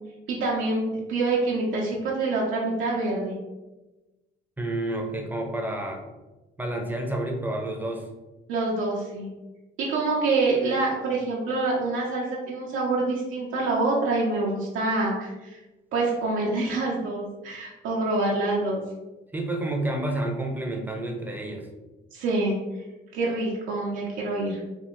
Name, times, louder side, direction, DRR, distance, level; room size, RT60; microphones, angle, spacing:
voice 1, 0.3-3.4 8.5-9.3 9.8-15.6 15.9-18.8 22.1-22.6 23.1-24.6, right 2 dB, 85° right, -4 dB, 0.6 m, -26 dB
voice 2, 4.6-6.0 6.6-8.0 19.3-21.7, right 1 dB, 10° right, 1 dB, 0.6 m, -29 dB
3.4 x 2.4 x 3.0 m, 1.1 s
cardioid pair, 90°, 20 cm